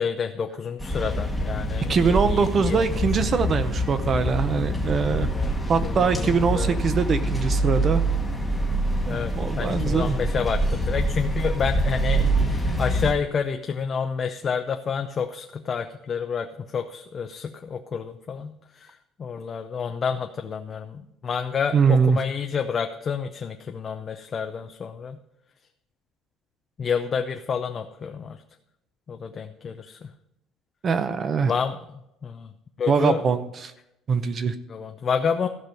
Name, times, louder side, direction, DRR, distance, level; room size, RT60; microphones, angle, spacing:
voice 1, 0.0-3.1 5.3-5.5 5.8-6.8 9.1-25.2 26.8-28.4 29.1-30.1 31.4-31.8 32.2-32.5 32.8-33.2 34.7-35.5, left 6 dB, 25° left, 5 dB, 0.5 m, -29 dB
sound 1, 0.8-13.1, right 1 dB, 5° left, 1.2 m, -25 dB
voice 2, 1.9-5.3 5.7-8.0 9.1-10.2 21.7-22.2 30.8-31.5 32.9-33.7 34.1-34.5, right 5 dB, 25° right, 12 dB, 0.7 m, -23 dB
14.5 x 6.1 x 5.3 m, 0.84 s
cardioid pair, 170°, 0 cm